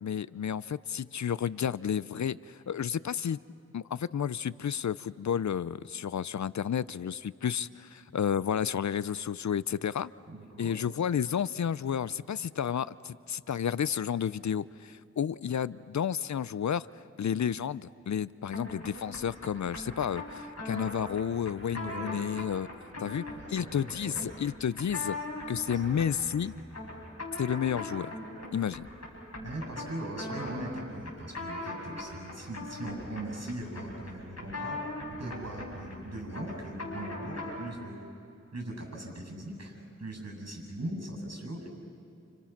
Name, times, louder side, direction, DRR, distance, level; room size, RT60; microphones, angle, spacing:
voice 1, 0.0-3.4 3.7-10.1 10.6-16.9 17.2-22.7 23.0-23.2 23.5-25.2 25.5-26.5 27.4-28.1 28.5-28.9, left 8 dB, 75° left, 18 dB, 0.6 m, -31 dB
voice 2, 10.3-10.8 13.5-13.6 14.7-14.8 21.7-22.2 23.0-24.3 24.8-25.1 25.7-25.8 26.5-26.6 28.3-28.5 29.4-34.8 35.2-38.0 38.5-41.7, right 1 dB, 60° right, 2 dB, 7.6 m, -40 dB
sound 1, 18.5-37.7, left 2 dB, 60° left, 8.0 m, -40 dB
30.0 x 29.5 x 5.9 m, 2.7 s
wide cardioid pair, 50°, 29 cm